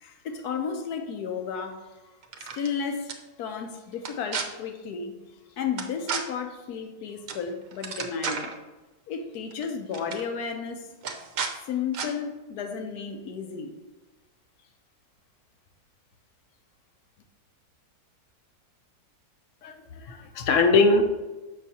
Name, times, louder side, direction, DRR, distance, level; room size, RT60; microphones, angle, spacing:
voice 1, 0.0-2.2 2.5-5.1 5.6-8.5 9.1-11.0 11.7-13.7, left 6 dB, 80° left, 1.2 m, -33 dB
sound 1, 2.2-2.7 3.1-3.2 4.0-4.4 5.8-6.2 7.3-7.4 7.7-8.5 9.5-9.6 9.9-10.2 11.0-11.5 11.9-12.1, right 6 dB, 65° right, 1.0 m, -32 dB
voice 2, 19.6-21.0, left 3 dB, 65° left, 0.9 m, -21 dB
7.3 x 5.6 x 2.8 m
omnidirectional pair, 1.7 m